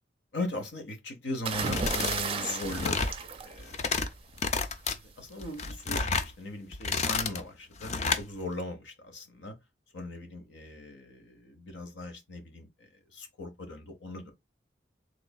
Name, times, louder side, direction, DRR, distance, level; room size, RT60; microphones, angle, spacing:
voice 1, 0.3-3.1 3.4-3.8 5.2-9.6 9.9-14.3, left 2 dB, 85° left, 0.9 m, -39 dB
sound 1, 1.4-4.2 5.4-5.7, right 4 dB, 30° right, 0.4 m, -34 dB
sound 2, 1.5-2.2 2.5-3.2 3.6-4.1 4.4-5.0 5.4-6.3 6.7-7.4 7.8-8.2, left 4 dB, 35° left, 0.4 m, -30 dB
3.8 x 3.2 x 2.2 m
head